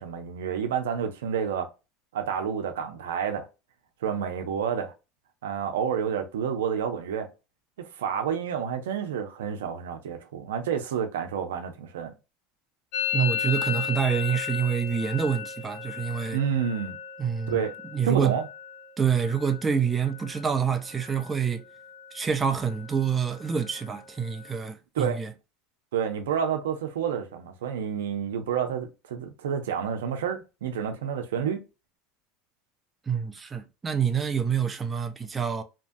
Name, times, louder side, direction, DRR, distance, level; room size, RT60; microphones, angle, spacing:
voice 1, 0.0-1.7 2.1-3.5 4.0-4.9 5.4-7.3 7.8-12.1 16.3-17.0 17.5-17.7 18.0-18.5 24.9-25.2 25.9-31.6, right 8 dB, 90° right, 0.6 m, -29 dB
Musical instrument, 12.9-20.6 20.8-21.4 21.7-22.3 22.5-24.5, left 7 dB, 70° left, 0.4 m, -35 dB
voice 2, 13.1-16.4 17.2-17.6 17.9-18.4 19.0-21.6 22.1-25.3 33.1-35.6, right 7 dB, 20° right, 0.4 m, -27 dB
2.8 x 2.3 x 2.6 m
supercardioid pair, 105°, 0 cm